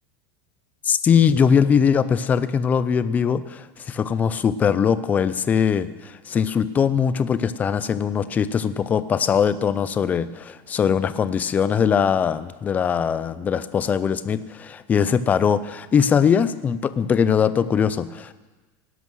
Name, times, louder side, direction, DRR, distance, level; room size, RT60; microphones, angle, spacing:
voice 1, 0.9-18.3, left 7 dB, 15° left, 14 dB, 0.4 m, -21 dB
17.5 x 11.0 x 6.2 m, 1.3 s
supercardioid pair, 175°, 12 cm